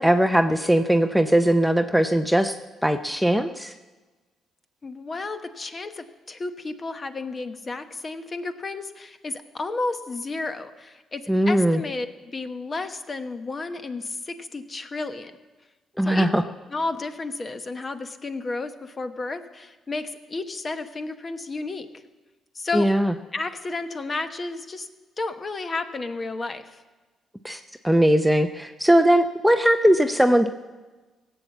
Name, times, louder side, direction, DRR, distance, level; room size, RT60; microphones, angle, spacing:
voice 1, 0.0-2.5 2.8-3.7 11.3-11.8 16.0-16.4 22.7-23.1 27.4-30.5, right 1 dB, ahead, 7 dB, 0.6 m, -20 dB
voice 2, 4.8-15.3 16.0-16.3 16.7-22.0 22.5-22.9 23.3-24.9 25.2-26.8, left 3 dB, 35° left, 9 dB, 1.1 m, -32 dB
17.0 x 7.9 x 7.2 m, 1.2 s
cardioid pair, 90°, 0 cm